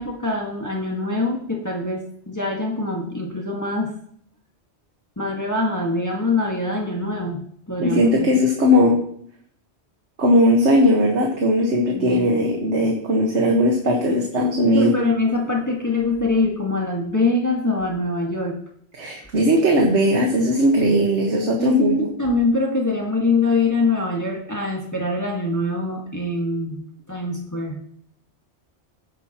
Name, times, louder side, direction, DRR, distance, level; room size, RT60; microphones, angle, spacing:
voice 1, 0.0-3.9 5.2-8.3 11.9-12.3 14.1-14.2 14.7-18.5 21.5-26.8 27.1-27.8, left 2 dB, 15° left, -1 dB, 1.7 m, -24 dB
voice 2, 7.8-9.0 10.2-14.9 19.0-21.9, equal, 90° right, 0 dB, 1.8 m, -18 dB
16.5 x 9.7 x 3.0 m, 0.64 s
omnidirectional pair, 1.1 m